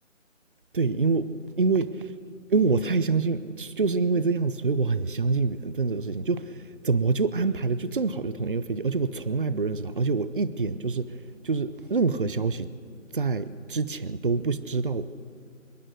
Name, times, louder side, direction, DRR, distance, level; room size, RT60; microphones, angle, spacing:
voice 1, 0.7-2.1 2.5-12.7 13.1-15.1, right 4 dB, 40° right, 15 dB, 0.7 m, -26 dB
25.5 x 22.0 x 6.4 m, 2.2 s
figure-of-eight pair, 170°, 39 cm